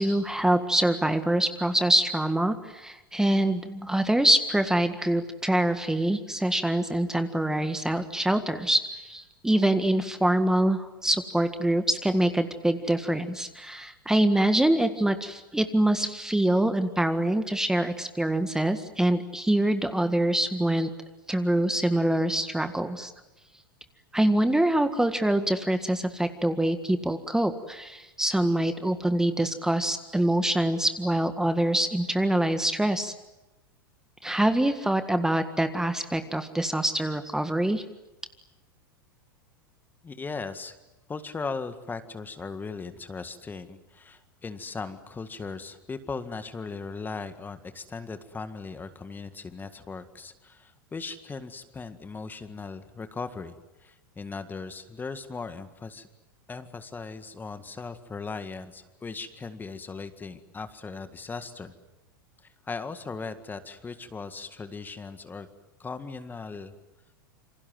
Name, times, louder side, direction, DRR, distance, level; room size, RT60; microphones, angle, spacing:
voice 1, 0.0-20.9 21.3-23.1 24.1-33.1 34.2-37.8, right 1 dB, 5° right, 9 dB, 1.8 m, -25 dB
voice 2, 40.0-40.8 41.1-56.1 56.5-61.7 62.6-65.5 65.8-66.7, left 4 dB, 15° left, 10 dB, 1.9 m, -38 dB
28.0 x 26.0 x 7.8 m, 1.0 s
hypercardioid pair, 90°, 11 cm